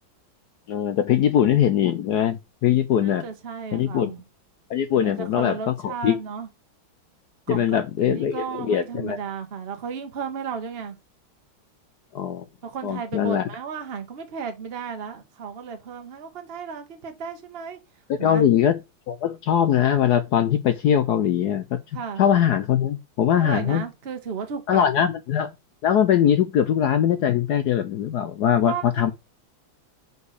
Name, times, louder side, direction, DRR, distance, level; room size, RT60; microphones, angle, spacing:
voice 1, 0.7-3.2 3.7-4.1 4.7-6.2 7.5-9.2 12.1-12.4 12.8-13.5 18.1-18.8 19.1-21.8 22.2-23.8 24.7-25.5 25.8-29.1, left 9 dB, 75° left, 0.9 m, -21 dB
voice 2, 3.0-4.2 5.0-6.5 7.5-7.7 8.0-11.0 12.6-17.8 18.2-18.4 21.9-22.2 23.4-24.9 28.6-29.1, right 6 dB, 35° right, 1.1 m, -34 dB
5.3 x 4.7 x 6.4 m
omnidirectional pair, 2.3 m